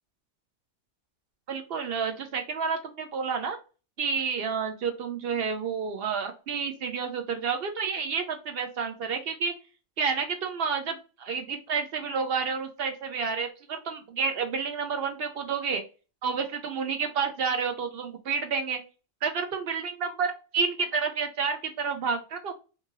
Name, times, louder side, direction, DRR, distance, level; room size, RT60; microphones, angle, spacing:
voice 1, 1.5-3.6 4.0-9.5 10.0-15.8 16.2-18.8 19.2-22.5, right 5 dB, 65° right, 5 dB, 0.7 m, -30 dB
2.6 x 2.6 x 2.8 m, 0.33 s
omnidirectional pair, 1.2 m